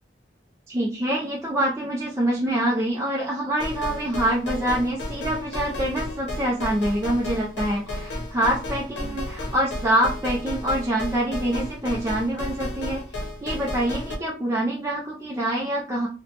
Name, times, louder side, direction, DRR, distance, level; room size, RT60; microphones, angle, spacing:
voice 1, 0.7-13.0 13.4-16.1, right 1 dB, 15° right, -3 dB, 0.4 m, -25 dB
sound 1, 3.6-14.2, left 1 dB, 75° left, 0.8 m, -33 dB
2.9 x 2.1 x 2.8 m, 0.35 s
head